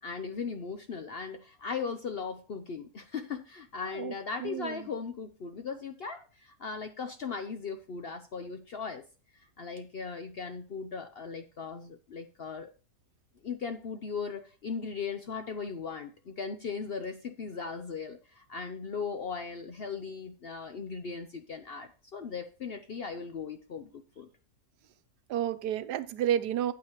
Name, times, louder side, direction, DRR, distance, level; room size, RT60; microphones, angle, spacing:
voice 1, 0.0-9.0 9.6-12.7 13.4-24.3, left 5 dB, 55° left, 0.7 m, -38 dB
voice 2, 4.4-4.9 25.3-26.7, right 10 dB, 90° right, 1.3 m, -31 dB
8.9 x 8.7 x 3.0 m
omnidirectional pair, 1.7 m